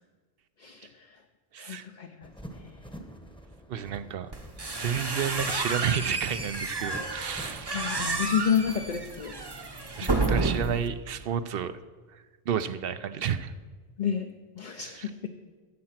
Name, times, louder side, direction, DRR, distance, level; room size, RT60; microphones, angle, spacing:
voice 1, 0.6-1.1 1.6-2.3 2.6-2.7 7.7-9.3 10.0-10.3 14.0-14.3 14.6-15.3, left 8 dB, 50° left, 4 dB, 0.8 m, -30 dB
voice 2, 1.5-1.8 3.7-4.3 4.8-7.9 10.0-11.7 12.5-13.5 14.8-15.1, right 8 dB, 65° right, 13 dB, 0.8 m, -31 dB
sound 1, 2.2-8.4, equal, 5° left, 0.9 m, -46 dB
sound 2, 4.3-10.9, right 3 dB, 25° right, 0.8 m, -31 dB
14.0 x 7.6 x 5.8 m, 1.4 s
omnidirectional pair, 1.1 m